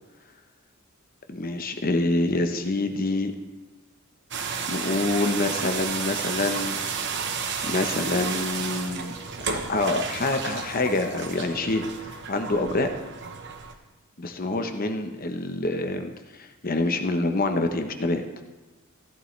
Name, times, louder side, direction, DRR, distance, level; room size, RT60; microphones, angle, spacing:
voice 1, 1.3-3.3 4.7-6.8 7.6-9.1 9.4-12.9 14.2-16.1 16.4-18.2, left 2 dB, 45° left, 6 dB, 0.9 m, -26 dB
sound 1, 4.3-13.7, right 6 dB, 55° right, 1.0 m, -32 dB
15.5 x 11.0 x 3.3 m, 1.2 s
head